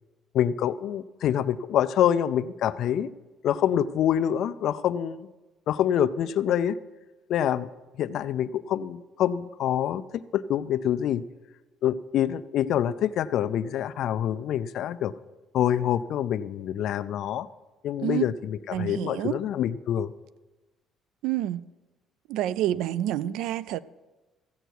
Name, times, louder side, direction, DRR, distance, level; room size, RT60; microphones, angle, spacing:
voice 1, 0.3-3.1 3.4-5.3 5.7-6.8 7.3-7.7 8.0-11.2 11.8-15.1 15.5-17.5 17.8-20.1, left 10 dB, 55° left, 0.4 m, -26 dB
voice 2, 18.7-19.4 21.2-21.7 22.3-23.8, right 13 dB, 80° right, 0.3 m, -28 dB
14.5 x 7.9 x 4.6 m
cardioid pair, 170°, 0 cm